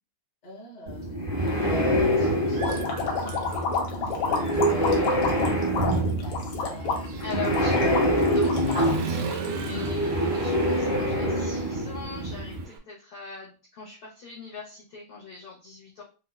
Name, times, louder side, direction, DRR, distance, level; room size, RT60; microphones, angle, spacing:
voice 1, 0.4-7.4 10.0-10.7, equal, 40° left, -4 dB, 0.5 m, -45 dB
sound 1, 0.9-12.6, equal, 30° right, 0.8 m, -26 dB
Human voice / Motorcycle, 1.5-1.6 2.1-3.8 4.2-12.8, right 5 dB, 90° right, 1.4 m, -38 dB
sound 2, 2.6-9.9, left 5 dB, 75° left, 1.6 m, -30 dB
voice 2, 7.2-16.0, left 5 dB, 90° left, -6 dB, 1.1 m, -41 dB
5.4 x 2.2 x 2.3 m, 0.35 s
omnidirectional pair, 3.7 m